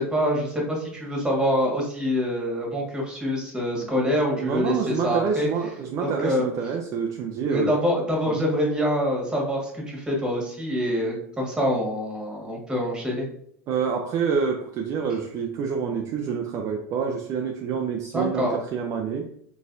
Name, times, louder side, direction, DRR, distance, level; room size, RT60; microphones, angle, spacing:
voice 1, 0.0-5.5 6.0-6.5 7.5-13.3 18.1-18.6, equal, 10° right, -2 dB, 1.6 m, -25 dB
voice 2, 4.4-7.7 8.3-8.5 13.7-19.3, right 6 dB, 40° right, 2 dB, 0.5 m, -27 dB
4.1 x 3.3 x 2.6 m, 0.66 s
hypercardioid pair, 100°, 8 cm